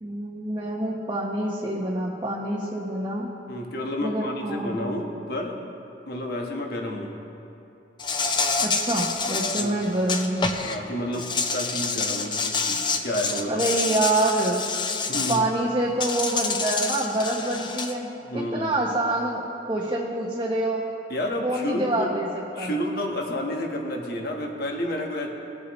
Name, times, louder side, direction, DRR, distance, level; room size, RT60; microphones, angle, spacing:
voice 1, 0.0-3.3 4.0-4.9 8.6-10.5 13.5-14.6 15.3-20.9 21.4-22.7, right 1 dB, 25° right, -4 dB, 0.9 m, -26 dB
voice 2, 3.5-5.6 6.1-7.1 9.5-9.8 10.6-13.6 15.1-15.5 18.2-18.7 21.1-22.1 22.6-25.3, left 1 dB, 60° left, 1 dB, 1.3 m, -30 dB
Insect, 8.0-10.8 11.1-15.4 16.0-17.9, left 4 dB, 25° left, 0.6 m, -27 dB
19.0 x 8.3 x 3.1 m, 2.7 s
head